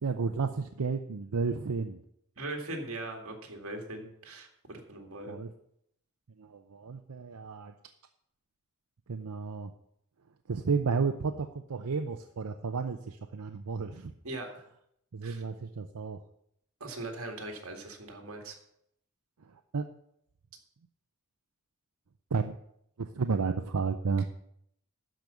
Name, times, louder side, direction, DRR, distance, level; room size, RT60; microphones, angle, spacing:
voice 1, 0.0-2.0 5.3-5.5 6.4-7.7 9.1-9.7 10.5-14.1 15.1-16.2 19.4-19.8 22.3-22.6 23.0-24.3, right 5 dB, 85° right, 6 dB, 0.6 m, -32 dB
voice 2, 2.4-5.4 14.2-14.6 15.2-15.4 16.8-18.6, right 2 dB, 65° right, 2 dB, 2.1 m, -40 dB
12.5 x 5.2 x 7.0 m, 0.73 s
head